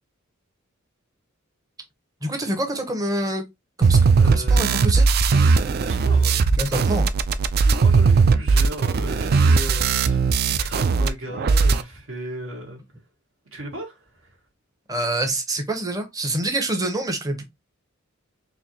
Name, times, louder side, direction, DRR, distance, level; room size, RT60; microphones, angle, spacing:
voice 1, 2.2-3.4 3.8-4.0 4.2-5.0 5.3-5.5 6.5-7.1 14.9-17.4, right 1 dB, 15° right, 0.8 m, -26 dB
sound 1, 3.8-11.1 11.3-11.8, right 4 dB, 50° right, 0.3 m, -18 dB
voice 2, 4.2-4.6 5.8-6.4 7.6-12.8 13.5-14.4, right 1 dB, 70° right, 1.5 m, -36 dB
4.1 x 2.6 x 2.9 m
head